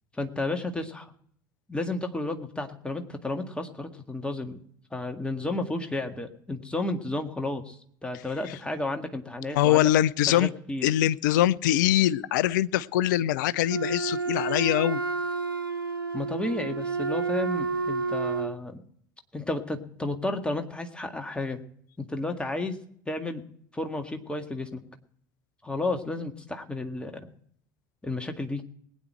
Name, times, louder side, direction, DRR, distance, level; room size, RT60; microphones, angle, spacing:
voice 1, 0.2-1.1 1.7-4.6 4.9-9.9 10.3-10.9 16.1-18.8 19.3-21.6 22.0-22.8 23.1-23.4 23.7-24.8 25.6-27.3 28.0-28.6, left 2 dB, 10° left, 5 dB, 1.8 m, -32 dB
voice 2, 9.5-10.5 10.8-15.0, left 13 dB, 60° left, 20 dB, 0.5 m, -23 dB
Wind instrument woodwind instrument, 13.7-18.6, right 4 dB, 85° right, 0.6 m, -30 dB
20.5 x 9.3 x 4.4 m, 0.62 s
figure-of-eight pair, 65°, 11 cm